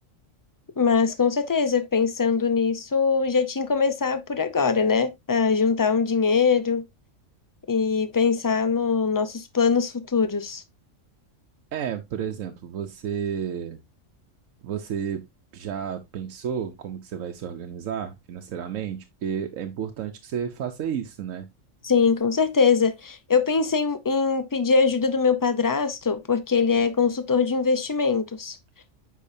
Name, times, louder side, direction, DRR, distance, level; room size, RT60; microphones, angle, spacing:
voice 1, 0.8-6.8 7.7-10.6 21.8-28.6, left 5 dB, 30° left, 0.4 m, -22 dB
voice 2, 11.7-13.8 14.6-15.3 15.5-21.5, right 8 dB, 80° right, 1.1 m, -31 dB
8.4 x 5.4 x 2.6 m
omnidirectional pair, 1.4 m